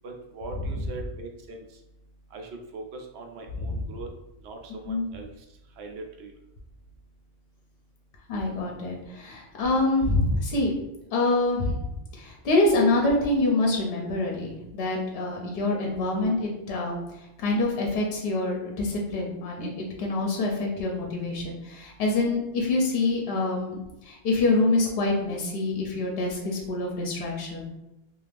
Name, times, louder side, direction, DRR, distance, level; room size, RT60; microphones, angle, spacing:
voice 1, 0.0-1.6 2.3-4.1 4.4-5.3 5.8-6.3, right 3 dB, 80° right, 2 dB, 0.8 m, -40 dB
voice 2, 8.3-10.7 11.1-16.9 17.4-27.6, left 2 dB, 70° left, -1 dB, 0.8 m, -26 dB
2.5 x 2.4 x 3.3 m, 0.90 s
omnidirectional pair, 1.1 m